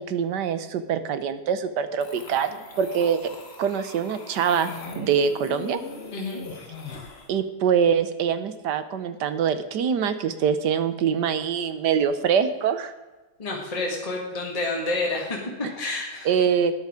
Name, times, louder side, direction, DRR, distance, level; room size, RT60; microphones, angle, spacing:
voice 1, 0.0-3.3 3.6-5.8 7.3-12.9 16.2-16.7, right 7 dB, 65° right, 11 dB, 1.4 m, -24 dB
sound 1, 2.0-7.3, left 3 dB, 35° left, 1.4 m, -39 dB
voice 2, 13.4-16.3, left 2 dB, 20° left, -2 dB, 1.8 m, -29 dB
13.0 x 9.4 x 5.0 m, 1.2 s
omnidirectional pair, 2.1 m